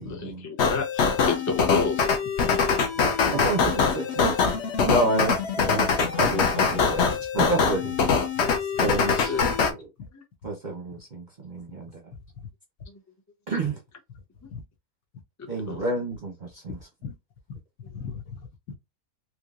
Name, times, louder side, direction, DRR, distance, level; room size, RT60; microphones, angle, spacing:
voice 1, 0.1-2.1 9.3-9.5 10.1-10.2 12.9-13.0 13.6-13.7 15.7-15.8, left 4 dB, 25° left, 0.4 m, -30 dB
sound 1, 0.6-9.7, left 5 dB, 55° left, 0.9 m, -23 dB
voice 2, 2.7-7.9 8.8-9.9 10.4-11.9 13.5-13.8 15.5-16.8, right 2 dB, 40° right, 0.7 m, -30 dB
voice 3, 17.9-18.8, left 6 dB, 70° left, 1.3 m, -38 dB
3.6 x 3.0 x 2.4 m
omnidirectional pair, 1.7 m